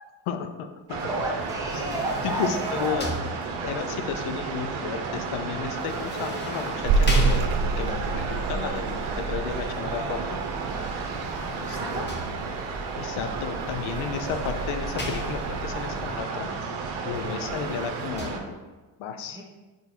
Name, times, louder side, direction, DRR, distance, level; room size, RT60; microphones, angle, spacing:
voice 1, 0.3-1.0 1.7-2.0 2.2-3.1 3.6-7.5 7.8-10.4 11.5-12.1 12.9-16.5 17.0-18.6 19.0-19.4, left 7 dB, 80° left, 7 dB, 0.8 m, -33 dB
sound 1, 0.9-18.4, right 4 dB, 85° right, 1.0 m, -32 dB
voice 2, 1.0-3.0 10.7-11.2 11.6-12.0 19.3-19.4, right 1 dB, 5° right, -2 dB, 1.3 m, -32 dB
sound 2, 1.5-3.9 5.8-8.1 10.9-12.8 13.8-15.8 17.1-18.3, left 2 dB, 20° left, 1.0 m, -37 dB
sound 3, 6.8-16.2, right 4 dB, 50° right, 0.6 m, -30 dB
4.7 x 4.7 x 4.3 m, 1.2 s
supercardioid pair, 80°, 48 cm